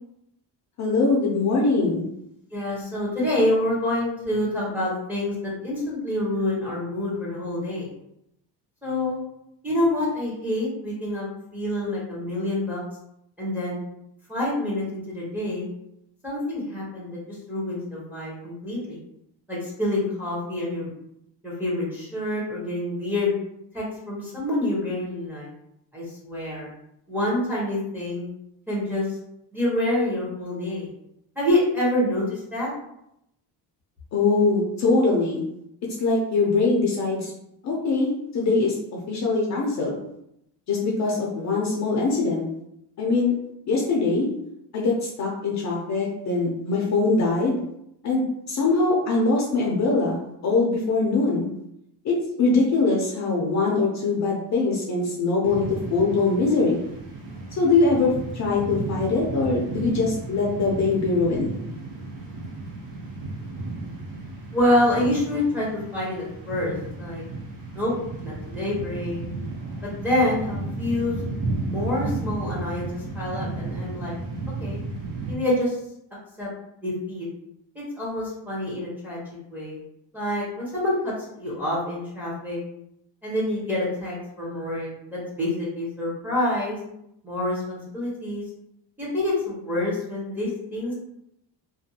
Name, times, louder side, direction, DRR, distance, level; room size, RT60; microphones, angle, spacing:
voice 1, 0.8-2.0 34.1-35.4 36.0-37.3 37.6-38.7 39.1-39.9 40.7-42.4 43.0-43.3 43.7-44.3 44.7-44.9 45.2-47.6 48.0-48.2 48.5-51.5 52.0-56.8 57.6-61.5, left 3 dB, 40° left, -3 dB, 0.5 m, -22 dB
voice 2, 2.5-7.9 8.8-9.2 9.6-12.8 13.4-13.8 14.3-15.7 16.2-17.2 17.5-19.0 19.5-20.9 21.4-23.3 23.7-25.5 25.9-26.7 27.1-28.3 28.7-29.1 29.5-30.9 31.4-32.7 64.5-67.2 67.7-67.9 68.2-69.3 70.0-71.1 71.6-74.1 74.6-74.8 75.3-75.8 76.4-76.5 76.8-77.3 77.7-79.2 79.5-79.8 80.1-82.6 83.2-86.8 87.2-88.4 89.0-90.9, left 1 dB, 5° right, -6 dB, 0.8 m, -27 dB
sound 1, 55.4-75.4, right 3 dB, 80° right, 0.9 m, -33 dB
2.5 x 2.3 x 2.7 m, 0.79 s
cardioid pair, 160°, 42 cm